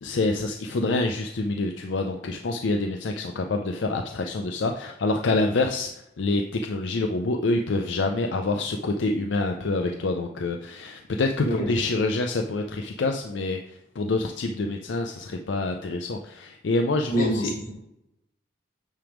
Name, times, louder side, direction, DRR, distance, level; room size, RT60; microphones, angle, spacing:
voice 1, 0.0-5.9 6.2-17.5, left 2 dB, 70° left, 4 dB, 0.5 m, -26 dB
voice 2, 17.1-17.7, right 1 dB, 45° left, -4 dB, 2.8 m, -26 dB
8.9 x 3.5 x 5.0 m, 0.85 s
head